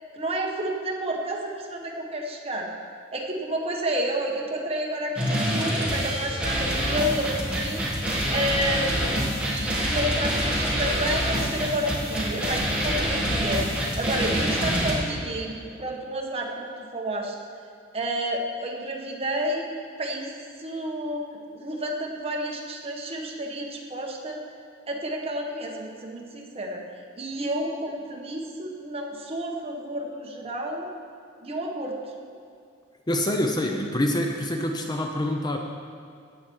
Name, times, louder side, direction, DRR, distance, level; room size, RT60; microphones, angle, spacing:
voice 1, 0.1-2.7 3.1-17.3 17.9-19.7 20.0-20.3 20.6-24.4 24.9-26.8 27.2-30.9 31.4-32.0, right 1 dB, 30° right, 0 dB, 1.4 m, -30 dB
sound 1, 5.2-14.9, equal, 5° right, 2.0 m, -26 dB
voice 2, 33.1-35.6, left 1 dB, 20° left, 2 dB, 0.6 m, -26 dB
14.5 x 8.6 x 4.7 m, 2.3 s
head